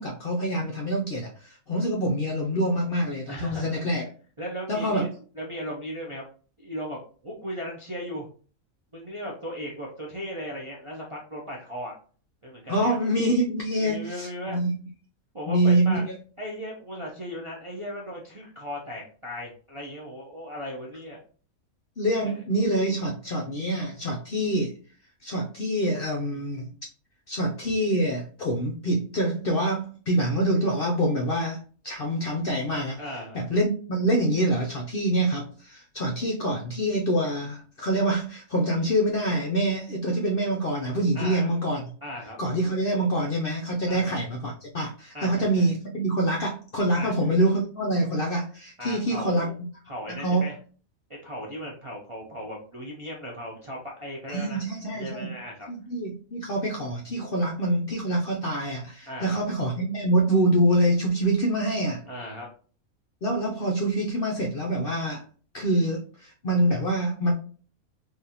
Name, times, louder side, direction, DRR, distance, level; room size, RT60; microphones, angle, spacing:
voice 1, 0.0-4.0 4.7-5.1 12.7-14.7 15.5-16.1 22.0-24.7 25.2-26.7 27.3-33.0 33.3-41.8 42.4-49.5 50.1-50.5 54.3-55.3 55.7-62.0 63.2-65.2 65.5-67.3, right 1 dB, 60° left, 0 dB, 0.6 m, -25 dB
voice 2, 3.3-3.8 4.4-5.1 5.4-6.2 6.6-8.3 8.9-11.9 12.4-13.0 13.8-14.6 15.3-16.0 16.4-21.2 22.2-22.4 33.0-33.4 41.1-41.5 42.0-42.4 43.9-44.1 45.1-45.7 46.9-47.3 48.8-49.5 49.9-50.6 51.1-54.6 54.9-55.7 59.1-59.4 62.1-62.5, equal, 40° right, -3 dB, 0.4 m, -37 dB
3.7 x 2.6 x 2.8 m, 0.41 s
omnidirectional pair, 1.5 m